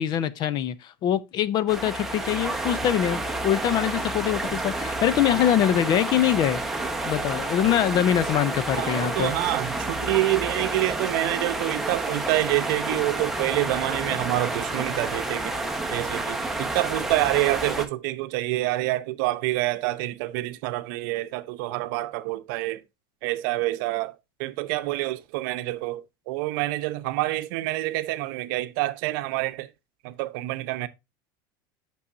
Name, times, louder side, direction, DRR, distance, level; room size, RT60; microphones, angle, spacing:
voice 1, 0.0-6.6 7.0-9.3, left 10 dB, 40° left, 0.6 m, -23 dB
sound 1, 1.7-17.9, right 2 dB, ahead, 1.0 m, -30 dB
voice 2, 8.8-15.6 15.9-22.8 23.2-29.7 30.0-30.9, right 18 dB, 65° right, 0.8 m, -27 dB
8.4 x 6.2 x 2.6 m
supercardioid pair, 145°, 12 cm